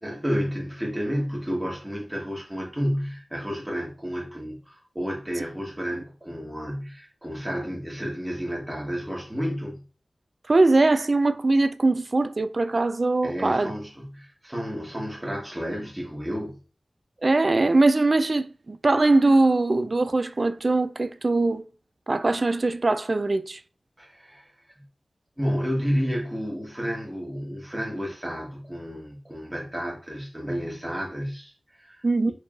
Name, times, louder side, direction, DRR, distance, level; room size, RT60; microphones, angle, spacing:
voice 1, 0.0-9.8 13.2-16.6 24.0-24.8 25.4-32.3, equal, 15° right, 1.2 m, -31 dB
voice 2, 10.5-13.7 17.2-21.6 22.1-23.6 32.0-32.3, right 2 dB, 55° right, 0.3 m, -21 dB
4.4 x 3.1 x 2.4 m
cardioid pair, 45°, 0 cm